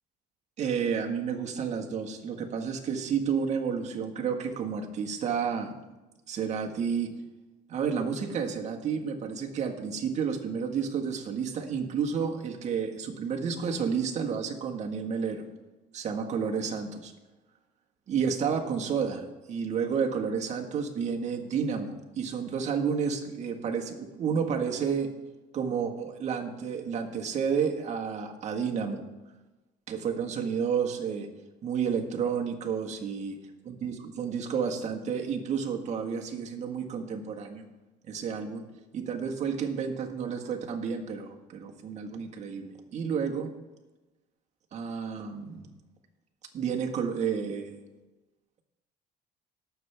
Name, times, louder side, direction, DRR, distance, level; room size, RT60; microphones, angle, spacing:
voice 1, 0.6-5.7 6.3-7.2 7.7-15.4 15.9-17.1 18.1-25.1 25.5-29.0 29.9-31.3 31.6-33.4 33.6-37.7 38.0-38.7 38.9-43.5 44.7-45.7 46.5-47.8, right 6 dB, 45° right, 2 dB, 1.5 m, -31 dB
18.5 x 7.0 x 3.4 m, 1.1 s
cardioid pair, 110°, 16 cm